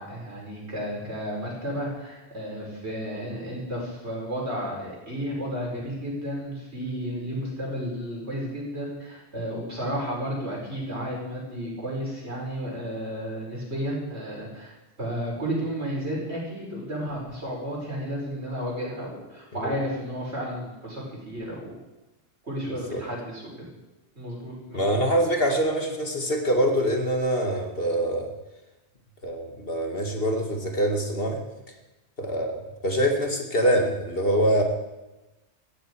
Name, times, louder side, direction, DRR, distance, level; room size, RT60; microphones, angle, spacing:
voice 1, 0.0-21.8 22.4-23.4 24.2-25.0, equal, 70° right, -3 dB, 5.6 m, -32 dB
voice 2, 22.7-23.0 24.7-28.3 29.2-31.4 32.2-34.6, equal, 55° left, 2 dB, 2.4 m, -24 dB
17.5 x 14.5 x 4.8 m, 1.0 s
omnidirectional pair, 1.2 m